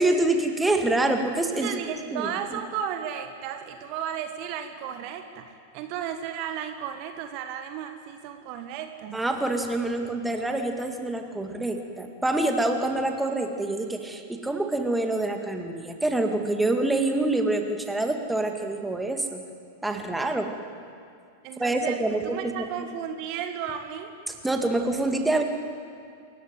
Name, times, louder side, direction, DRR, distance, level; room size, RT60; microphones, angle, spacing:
voice 1, 0.0-1.7 2.1-2.6 9.1-19.4 19.8-20.5 21.6-22.4 24.4-25.4, right 2 dB, 5° right, 4 dB, 2.2 m, -26 dB
voice 2, 1.5-9.2 21.4-24.1, right 9 dB, 45° right, 7 dB, 1.6 m, -34 dB
27.0 x 15.0 x 9.2 m, 2.3 s
figure-of-eight pair, 95°, 0 cm